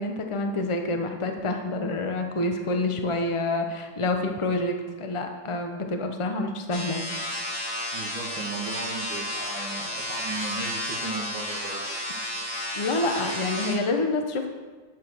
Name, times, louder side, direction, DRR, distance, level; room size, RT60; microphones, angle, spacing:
voice 1, 0.0-7.0 12.7-14.5, left 2 dB, 35° left, 4 dB, 0.5 m, -27 dB
sound 1, 6.7-13.7, equal, 70° left, 4.6 m, -32 dB
voice 2, 7.9-11.8, right 3 dB, 65° right, -6 dB, 2.4 m, -36 dB
11.5 x 7.9 x 6.2 m, 1.3 s
omnidirectional pair, 2.4 m